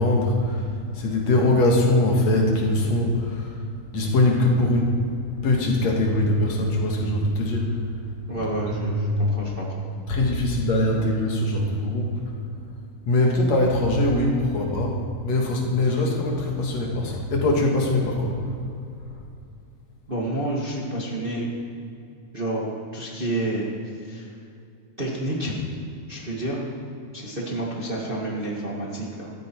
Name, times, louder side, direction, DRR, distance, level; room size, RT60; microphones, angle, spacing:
voice 1, 0.0-3.6 3.9-5.0 5.4-7.8 8.7-9.2 10.1-12.2 13.1-18.4, left 1 dB, 65° left, 0 dB, 2.9 m, -22 dB
voice 2, 8.3-9.8 20.1-21.5 22.3-22.7 22.9-23.7 24.0-24.3 25.0-25.6 26.1-26.6 27.1-29.3, right 1 dB, 20° right, -3 dB, 1.7 m, -29 dB
16.0 x 14.0 x 4.6 m, 2.5 s
omnidirectional pair, 3.4 m